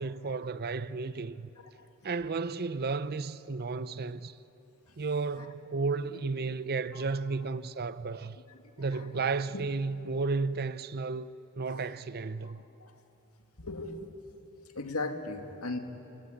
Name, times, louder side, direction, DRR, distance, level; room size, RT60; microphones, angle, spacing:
voice 1, 0.0-1.5 2.0-4.3 5.0-8.4 8.8-11.3 11.6-12.6, right 4 dB, 45° right, 0.7 m, -33 dB
voice 2, 12.4-12.9 13.6-14.1 14.7-15.8, left 2 dB, 85° left, 2.2 m, -38 dB
28.5 x 18.5 x 9.9 m
head